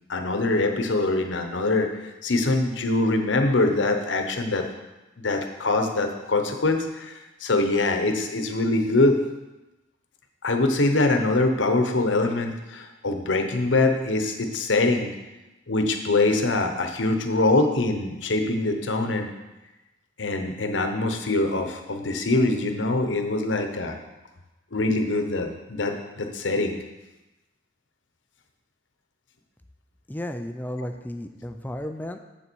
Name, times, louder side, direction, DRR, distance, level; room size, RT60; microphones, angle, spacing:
voice 1, 0.1-1.9 2.2-4.6 5.2-9.2 10.4-15.1 15.7-19.3 20.2-24.0 24.7-26.8, left 2 dB, 85° left, 5 dB, 0.9 m, -23 dB
voice 2, 30.1-32.2, left 1 dB, 10° left, 7 dB, 0.4 m, -33 dB
7.5 x 6.8 x 4.6 m, 1.1 s
head